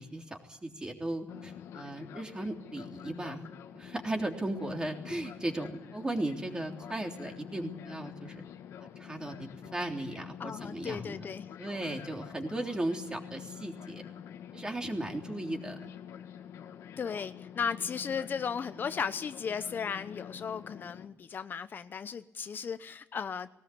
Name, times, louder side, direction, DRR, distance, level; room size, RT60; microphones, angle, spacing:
voice 1, 0.0-3.5 3.7-8.4 9.0-11.3 11.6-14.0 14.5-15.9, right 1 dB, 15° right, 3 dB, 3.4 m, -36 dB
Fixed-wing aircraft airplane, 1.3-21.1, left 9 dB, 85° left, 1.7 m, -47 dB
voice 2, 10.4-11.5 17.0-23.5, left 6 dB, 45° left, 11 dB, 0.8 m, -36 dB
19.5 x 19.0 x 8.6 m, 0.86 s
cardioid pair, 125°, 5 cm